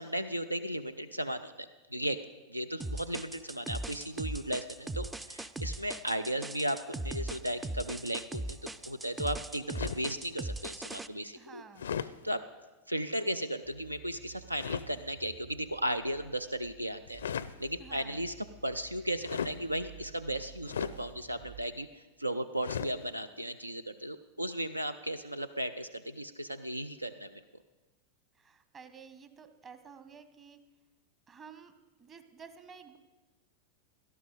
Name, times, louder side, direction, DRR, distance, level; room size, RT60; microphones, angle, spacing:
voice 1, 0.0-2.2 2.5-11.6 12.2-12.4 12.9-17.2 17.6-18.3 18.6-27.4, right 1 dB, 85° right, 12 dB, 0.4 m, -35 dB
sound 1, 2.8-11.1, right 2 dB, 10° right, 0.4 m, -39 dB
sound 2, 9.7-10.1 11.8-12.1 14.5-14.9 17.1-17.6 19.2-19.6 20.7-21.0 22.6-23.0, left 8 dB, 65° left, 0.4 m, -35 dB
voice 2, 11.3-12.0 17.8-18.3 28.3-30.6 31.3-31.7 32.0-33.0, right 6 dB, 25° right, 9 dB, 1.1 m, -52 dB
sound 3, 13.6-21.6, right 7 dB, 60° right, 2.3 m, -53 dB
17.0 x 12.5 x 3.9 m, 1.2 s
figure-of-eight pair, 90°, 0 cm